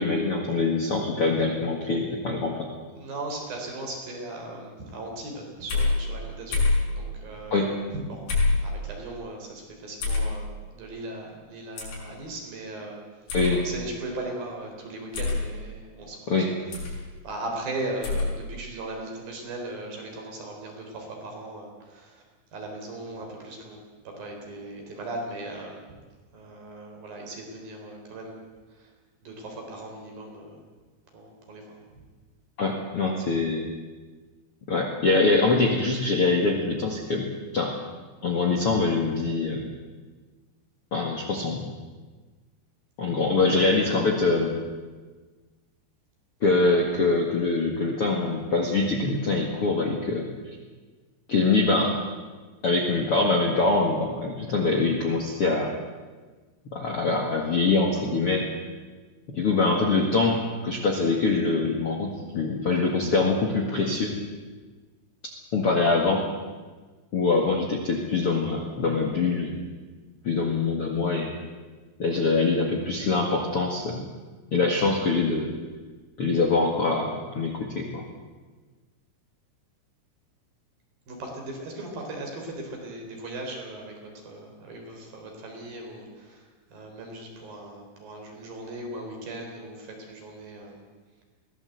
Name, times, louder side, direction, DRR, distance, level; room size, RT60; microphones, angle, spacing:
voice 1, 0.0-2.7 7.5-7.8 13.3-13.7 16.3-16.5 32.6-33.7 34.7-37.3 37.5-37.7 38.2-39.7 40.9-41.6 43.0-44.5 46.4-50.6 51.3-51.9 52.6-55.8 56.7-58.5 59.3-64.1 65.5-66.2 67.1-69.7 70.2-71.3 72.0-74.1 74.5-75.5 76.2-78.0, left 3 dB, 45° left, 0 dB, 1.9 m, -24 dB
voice 2, 2.9-7.7 7.9-13.0 13.6-16.4 16.9-17.0 17.2-22.2 22.5-23.8 24.1-25.8 26.3-28.9 29.2-30.6 31.1-31.8 81.1-86.4 86.7-90.8, right 2 dB, 55° right, 1 dB, 5.5 m, -38 dB
sound 1, 5.7-5.9 6.5-6.8 8.3-8.6 10.0-10.3 11.8-12.0 13.3-13.5 15.1-15.4 16.7-17.0 18.0-18.3, left 3 dB, 90° left, 8.5 m, -24 dB
22.0 x 17.0 x 8.0 m, 1.4 s
omnidirectional pair, 5.1 m